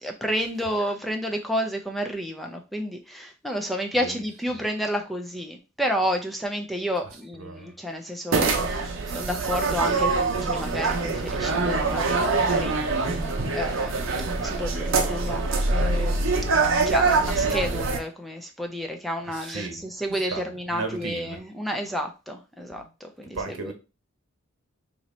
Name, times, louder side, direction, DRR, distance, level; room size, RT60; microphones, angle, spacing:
voice 1, 0.0-16.5 16.9-23.7, equal, ahead, 0.4 m, -31 dB
voice 2, 7.4-7.8 19.2-21.4 22.7-22.9 23.3-23.7, right 3 dB, 90° right, 1.0 m, -36 dB
sound 1, 8.3-18.0, right 3 dB, 60° right, 0.6 m, -24 dB
3.0 x 2.6 x 4.1 m
head